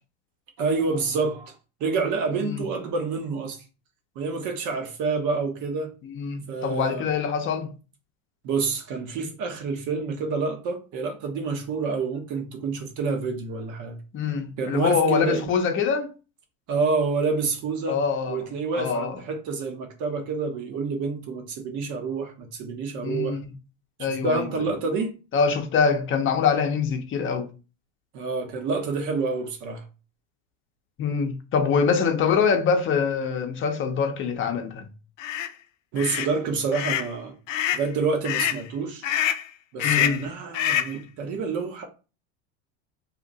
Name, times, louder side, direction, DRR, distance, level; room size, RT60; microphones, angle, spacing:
voice 1, 0.6-1.5 1.8-3.6 4.1-5.9 6.5-7.1 8.4-14.0 14.6-15.4 16.7-18.0 18.3-23.4 24.2-25.1 28.1-29.8 35.9-37.3 37.7-39.0 39.7-41.9, right 4 dB, 50° right, 1.1 m, -28 dB
voice 2, 6.1-7.7 14.1-16.1 17.9-18.4 18.7-19.2 23.0-23.4 24.0-24.7 25.3-27.5 31.0-34.9 39.8-40.3, left 6 dB, 35° left, 0.7 m, -24 dB
sound 1, 35.2-35.5 36.0-36.3 36.7-37.1 37.5-37.9 38.2-38.6 39.0-39.5 39.8-40.3 40.5-41.0, left 11 dB, 80° left, 0.5 m, -25 dB
2.8 x 2.5 x 3.9 m
supercardioid pair, 110°, 37 cm